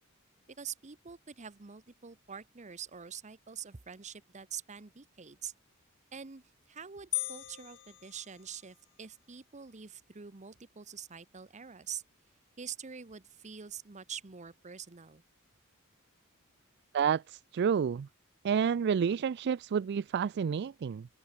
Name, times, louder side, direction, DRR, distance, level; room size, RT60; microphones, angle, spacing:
voice 1, 0.5-5.5 6.1-12.0 12.6-15.2, right 7 dB, 35° right, 0.9 m, -45 dB
sound 1, 7.1-8.9, left 19 dB, 60° left, 0.8 m, -39 dB
voice 2, 16.9-18.1 18.4-21.1, right 7 dB, 50° right, 0.3 m, -29 dB
open air
head